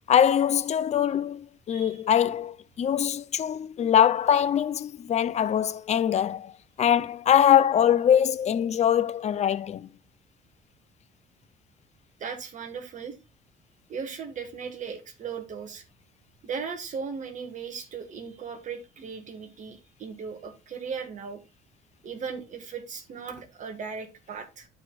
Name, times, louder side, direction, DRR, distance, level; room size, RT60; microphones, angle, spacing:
voice 1, 0.1-6.5 6.8-9.9, left 9 dB, 40° left, 0.5 m, -23 dB
voice 2, 1.7-2.0 12.2-13.2 13.9-15.8 16.4-21.4 22.0-24.7, right 6 dB, 50° right, 1.7 m, -37 dB
12.0 x 4.9 x 2.4 m
cardioid pair, 110°, 17 cm